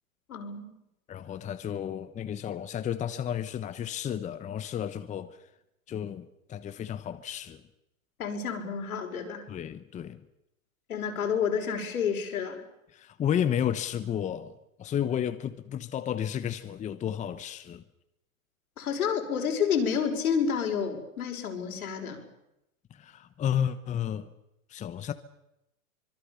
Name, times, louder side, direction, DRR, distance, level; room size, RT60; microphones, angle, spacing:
voice 1, 0.3-0.7 8.2-9.5 10.9-12.6 18.8-22.3, left 7 dB, 80° left, 5.7 m, -29 dB
voice 2, 1.1-5.5 5.9-7.6 9.5-10.3 12.9-17.8 22.9-24.3 24.7-25.1, left 9 dB, 15° left, 1.0 m, -32 dB
25.5 x 23.0 x 7.1 m
hypercardioid pair, 130°, 43 cm